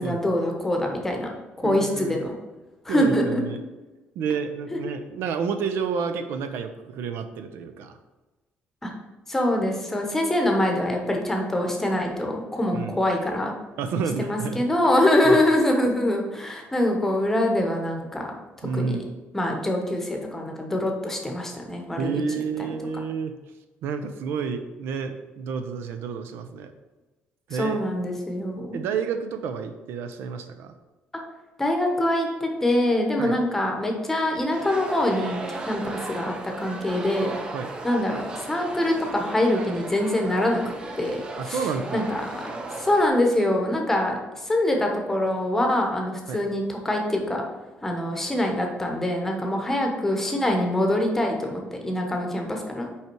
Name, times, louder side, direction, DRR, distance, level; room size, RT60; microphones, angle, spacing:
voice 1, 0.0-1.3 1.6-2.3 2.8-3.6 4.7-4.8 8.8-8.9 9.3-13.5 14.2-18.3 18.7-19.0 19.3-22.2 27.5-28.8 31.6-37.3 37.8-40.6 41.0-41.2 41.5-41.6 41.9-42.5 42.8-47.4 47.8-52.9, left 1 dB, 10° left, 2 dB, 0.9 m, -24 dB
voice 2, 1.6-2.2 2.9-3.6 4.2-8.0 12.7-13.0 13.8-14.7 15.2-15.4 18.6-19.0 22.0-23.3 23.8-26.7 27.5-27.8 28.7-30.8 33.2-33.4 37.5-37.7 41.4-42.1 46.3-46.4, right 6 dB, 75° right, 8 dB, 0.6 m, -30 dB
sound 1, 34.5-43.1, right 2 dB, 20° right, 0.6 m, -36 dB
5.7 x 4.8 x 4.5 m, 1.1 s
cardioid pair, 180°, 4 cm